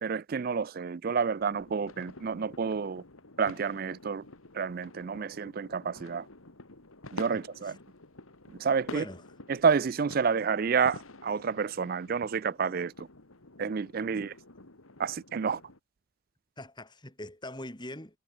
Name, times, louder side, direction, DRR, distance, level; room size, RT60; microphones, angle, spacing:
voice 1, 0.0-3.0 3.4-4.2 4.5-6.2 7.1-7.8 8.6-9.0 9.5-12.9 13.6-14.3 15.0-15.6, right 6 dB, 45° right, 0.4 m, -29 dB
sound 1, 1.3-15.8, left 2 dB, 80° left, 2.6 m, -49 dB
voice 2, 7.3-7.7 8.9-9.2 14.1-14.3 16.6-18.2, left 1 dB, 20° left, 4.3 m, -43 dB
head